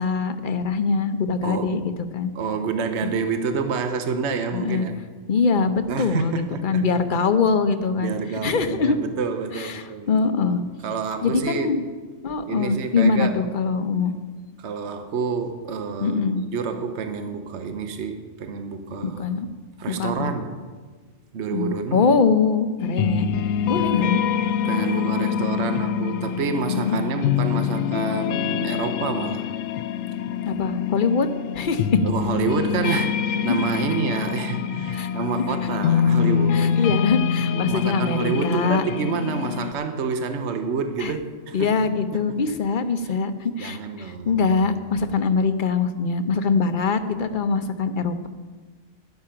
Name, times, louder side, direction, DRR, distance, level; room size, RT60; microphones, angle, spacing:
voice 1, 0.0-1.8 2.1-2.3 3.0-3.1 4.5-4.9 5.3-8.1 8.4-9.0 9.5-10.6 11.2-11.8 12.2-14.1 16.0-16.4 19.0-19.5 20.0-20.3 21.5-23.3 23.6-24.2 26.7-27.0 30.4-31.3 31.5-31.9 32.9-33.0 33.3-33.8 34.9-35.1 35.5-35.6 36.5-38.8 41.0-41.1 41.5-48.3, left 4 dB, 45° left, 9 dB, 0.8 m, -23 dB
voice 2, 1.4-1.8 2.3-5.0 5.9-6.8 8.0-10.1 10.8-11.7 12.5-13.4 14.6-16.2 16.5-19.3 19.8-20.6 21.3-22.1 23.9-24.1 24.6-29.5 32.0-36.9 37.5-41.7 43.1-43.2 43.6-44.4, right 5 dB, 60° right, 7 dB, 1.2 m, -28 dB
sound 1, 22.8-39.7, left 8 dB, 80° left, 1.0 m, -25 dB
12.5 x 11.0 x 5.8 m, 1.4 s
omnidirectional pair, 1.4 m